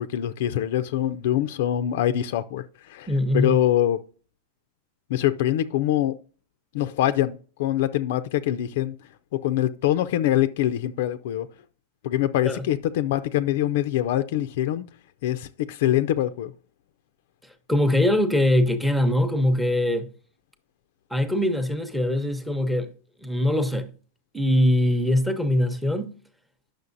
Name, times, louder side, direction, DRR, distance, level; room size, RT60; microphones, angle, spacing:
voice 1, 0.0-4.0 5.1-6.2 6.7-8.9 9.3-11.5 12.0-14.8 15.2-16.5, left 12 dB, 60° left, 0.4 m, -24 dB
voice 2, 3.1-3.6 12.4-12.6 17.4-20.1 21.1-22.9 23.2-23.9 24.3-26.2, left 1 dB, ahead, 0.7 m, -22 dB
9.6 x 6.3 x 2.6 m
supercardioid pair, 150°, 0 cm